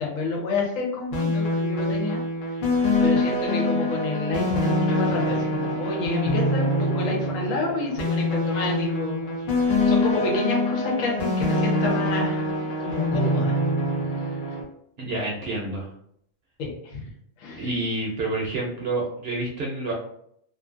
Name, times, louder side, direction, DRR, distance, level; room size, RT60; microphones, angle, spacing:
voice 1, 0.0-2.2 2.5-2.6 3.0-12.5 12.8-13.6 14.1-14.4 16.6-17.1 17.4-17.7, left 3 dB, 85° left, -2 dB, 1.2 m, -29 dB
sound 1, 1.1-14.6, left 1 dB, 50° left, 0.7 m, -24 dB
voice 2, 15.0-15.9 17.6-19.9, right 2 dB, 60° right, -3 dB, 0.7 m, -28 dB
2.6 x 2.5 x 2.5 m, 0.70 s
omnidirectional pair, 1.3 m